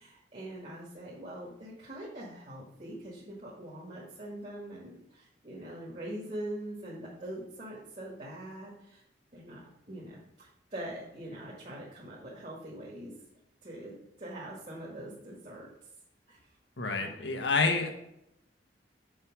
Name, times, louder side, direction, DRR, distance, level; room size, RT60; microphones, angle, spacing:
voice 1, 0.0-9.0 9.3-13.1 13.6-15.7 16.3-16.4 17.0-17.8, right 1 dB, 40° right, -5 dB, 1.9 m, -43 dB
voice 2, 16.8-18.0, left 4 dB, 80° left, 4 dB, 1.3 m, -28 dB
7.4 x 4.7 x 6.1 m, 0.80 s
head